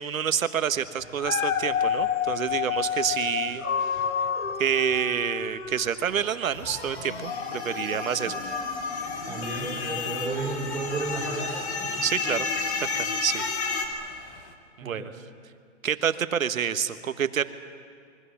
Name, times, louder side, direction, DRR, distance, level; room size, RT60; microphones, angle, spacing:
voice 1, 0.0-3.7 3.9-4.0 4.6-8.6 12.0-12.5 12.8-13.4 14.8-15.1 15.8-17.4, right 8 dB, 85° right, 11 dB, 1.4 m, -28 dB
Dog, 1.0-6.3 6.9-7.0, left 7 dB, 85° left, 1.6 m, -29 dB
sound 1, 6.5-13.9, left 4 dB, 55° left, 3.3 m, -32 dB
sound 2, 8.2-14.5, left 7 dB, 10° left, 0.7 m, -42 dB
voice 2, 9.3-11.9 14.8-15.1, right 3 dB, 5° right, -3 dB, 2.8 m, -33 dB
26.0 x 23.0 x 7.2 m, 2.2 s
hypercardioid pair, 165°, 39 cm